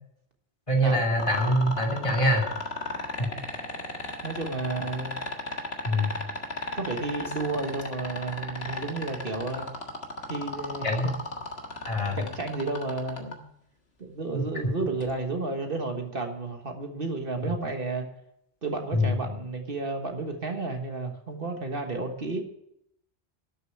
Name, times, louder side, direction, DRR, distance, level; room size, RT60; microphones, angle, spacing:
voice 1, 0.7-2.4 3.2-3.3 5.8-6.1 10.8-11.1 11.9-12.2 14.3-14.4 17.4-17.5 18.9-19.1, equal, 30° left, 1 dB, 2.7 m, -24 dB
sound 1, 1.2-13.3 15.0-15.1, left 2 dB, 70° left, 1.9 m, -34 dB
voice 2, 4.2-5.2 6.7-9.7 10.3-11.1 12.1-13.4 14.0-18.1 18.6-22.4, right 3 dB, 55° right, 4 dB, 1.7 m, -32 dB
12.0 x 6.8 x 9.1 m, 0.76 s
omnidirectional pair, 1.1 m